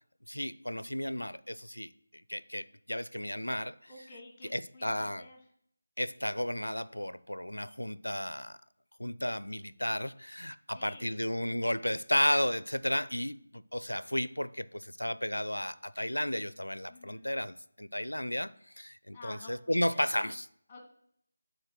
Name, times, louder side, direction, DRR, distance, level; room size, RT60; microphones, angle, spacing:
voice 1, 0.3-1.9 2.3-3.9 4.5-5.3 6.0-8.6 9.0-18.5 18.8-20.4, left 1 dB, 85° left, 0.4 m, -33 dB
voice 2, 3.9-5.4 10.7-11.2 16.9-17.2 19.1-19.8 20.2-20.3 20.7-20.8, left 2 dB, 15° left, 1.7 m, -51 dB
9.9 x 4.4 x 6.5 m
figure-of-eight pair, 160°, 0 cm